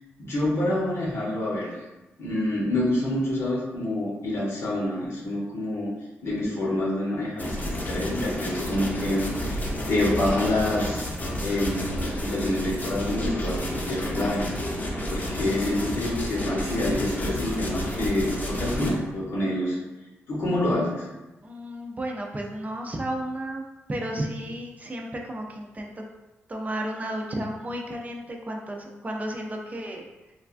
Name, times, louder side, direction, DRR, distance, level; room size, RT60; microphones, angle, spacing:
voice 1, 0.2-1.7 2.2-5.9 6.2-11.1 11.4-14.8 15.1-19.8 20.3-21.1, left 1 dB, 65° left, -4 dB, 1.0 m, -27 dB
sound 1, 7.4-18.9, equal, 35° left, 0.7 m, -31 dB
voice 2, 21.4-25.9 26.5-30.0, right 1 dB, 30° right, 1 dB, 0.5 m, -33 dB
3.2 x 2.2 x 2.5 m, 1.1 s
cardioid pair, 55°, 5 cm